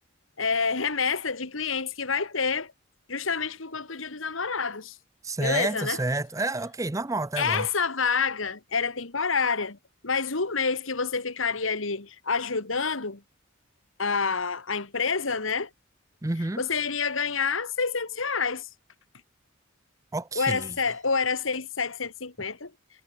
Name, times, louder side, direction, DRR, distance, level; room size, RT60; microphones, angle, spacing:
voice 1, 0.4-2.7 3.1-5.0 5.4-6.0 7.4-9.8 10.0-13.2 14.0-15.7 16.6-18.7 20.3-22.7, left 5 dB, 85° left, 2.1 m, -28 dB
voice 2, 5.2-7.7 16.2-16.6 20.1-20.7, right 2 dB, 15° right, 0.6 m, -29 dB
head